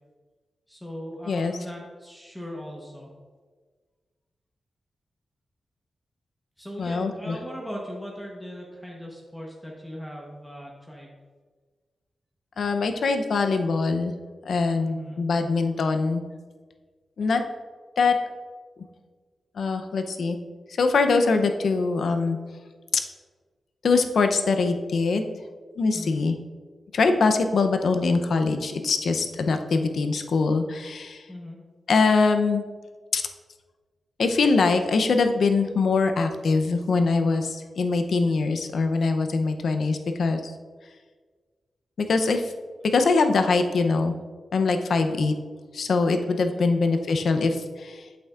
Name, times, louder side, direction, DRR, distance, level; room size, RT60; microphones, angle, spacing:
voice 1, 0.7-3.1 6.6-11.2 14.9-15.2 25.9-26.2 31.3-31.6 46.5-46.8, equal, 5° left, -3 dB, 1.0 m, -39 dB
voice 2, 6.8-7.4 12.6-14.1 14.4-16.2 17.2-17.4 18.0-18.2 19.6-20.4 20.7-22.4 22.9-23.0 23.8-25.2 25.8-26.4 26.9-31.3 31.9-32.6 33.1-33.2 34.2-40.5 42.0-42.5 42.8-44.1 44.5-45.3 45.7-48.1, left 4 dB, 70° left, 6 dB, 0.6 m, -23 dB
8.1 x 7.8 x 2.5 m, 1.5 s
wide cardioid pair, 120°, 0 cm